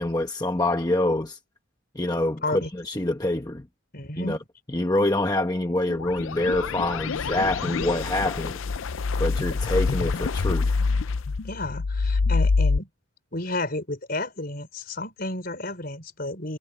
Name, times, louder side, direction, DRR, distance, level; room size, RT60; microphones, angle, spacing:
voice 1, 0.0-1.4 1.9-3.7 4.2-4.4 4.7-8.5 9.2-10.8, left 1 dB, 20° left, 1.0 m, -26 dB
voice 2, 3.9-4.4 11.4-12.9 13.3-16.6, left 2 dB, 45° left, 4.8 m, -31 dB
sound 1, 5.9-12.8, left 4 dB, 75° left, 0.5 m, -26 dB
head